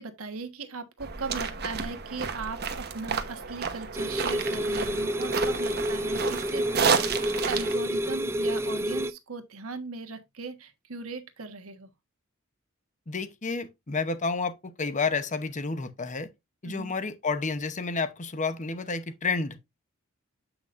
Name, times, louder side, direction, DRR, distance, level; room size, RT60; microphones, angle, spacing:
voice 1, 0.0-7.2 7.4-11.9 16.6-16.9, right 4 dB, 85° right, 1.4 m, -38 dB
sound 1, 1.0-7.8, right 5 dB, 50° right, 1.1 m, -31 dB
sound 2, 3.9-9.1, equal, 10° right, 0.5 m, -29 dB
voice 2, 13.1-16.3 16.6-19.6, left 4 dB, 35° left, 0.9 m, -30 dB
8.2 x 6.0 x 2.5 m
head